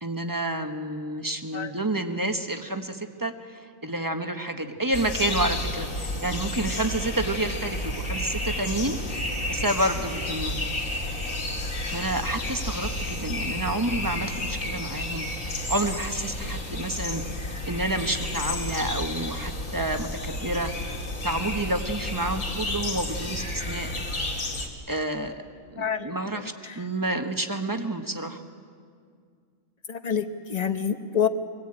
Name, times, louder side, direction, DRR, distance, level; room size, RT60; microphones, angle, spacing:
voice 1, 0.0-9.0 9.5-10.8 11.9-15.3 15.7-17.2 17.7-20.7 21.2-23.9 24.9-25.3 25.7-28.4, right 1 dB, 15° right, 6 dB, 1.0 m, -29 dB
sound 1, 4.9-24.7, left 1 dB, 65° left, 3.0 m, -31 dB
voice 2, 25.8-26.8 29.9-31.3, left 8 dB, 30° left, 8 dB, 1.0 m, -28 dB
24.5 x 18.5 x 8.8 m, 2.1 s
omnidirectional pair, 1.5 m